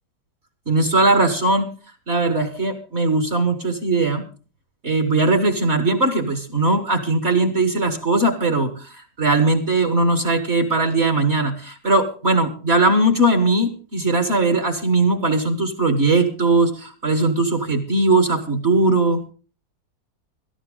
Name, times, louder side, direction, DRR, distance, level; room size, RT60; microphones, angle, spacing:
voice 1, 0.7-1.7 2.1-4.2 4.8-19.2, right 2 dB, 40° right, 8 dB, 1.6 m, -19 dB
17.5 x 13.5 x 3.8 m, 0.36 s
omnidirectional pair, 2.0 m